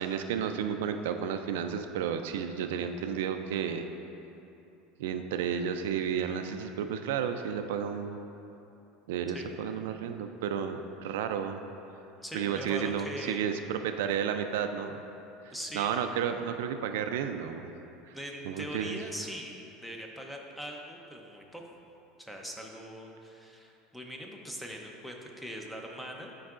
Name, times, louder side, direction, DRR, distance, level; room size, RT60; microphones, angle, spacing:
voice 1, 0.0-3.9 5.0-8.2 9.1-11.6 12.3-15.0 15.4-17.7 18.1-18.2 18.5-19.0, right 8 dB, 85° right, 7 dB, 0.3 m, -32 dB
voice 2, 12.2-13.5 15.5-15.9 18.1-21.6 22.2-26.3, equal, 5° left, 1 dB, 0.6 m, -41 dB
10.5 x 4.6 x 2.5 m, 2.9 s
supercardioid pair, 140°, 0 cm